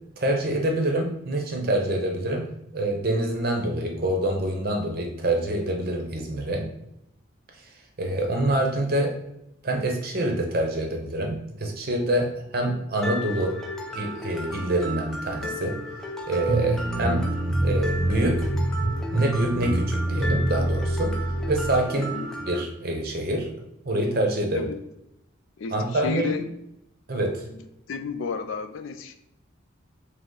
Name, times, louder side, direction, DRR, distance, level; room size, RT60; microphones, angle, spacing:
voice 1, 0.2-2.4 2.7-6.7 8.0-9.1 9.6-13.6 13.9-15.8 16.3-17.2 17.6-18.5 19.1-21.1 21.5-22.1 22.5-23.5 23.8-24.6 25.7-26.3 27.1-27.4, right 1 dB, 45° right, 2 dB, 0.7 m, -26 dB
Mallet percussion, 13.0-22.6, equal, 5° left, 0.4 m, -35 dB
sound 1, 16.5-21.8, right 1 dB, 15° right, 0.8 m, -26 dB
voice 2, 21.9-22.3 24.5-24.8 25.6-26.5 27.5-29.2, left 5 dB, 75° left, 9 dB, 0.4 m, -32 dB
5.1 x 2.0 x 3.8 m, 0.81 s
head